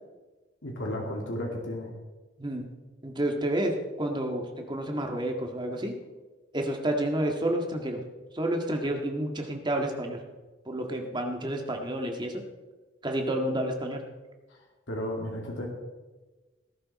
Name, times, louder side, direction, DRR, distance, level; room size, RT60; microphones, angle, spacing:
voice 1, 0.6-1.9 14.9-15.7, left 1 dB, 80° left, 0 dB, 2.4 m, -33 dB
voice 2, 3.0-5.9 6.5-8.0 8.3-10.2 10.6-12.4 13.0-14.0, right 1 dB, 25° right, 3 dB, 1.8 m, -30 dB
19.0 x 11.0 x 4.2 m, 1.2 s
head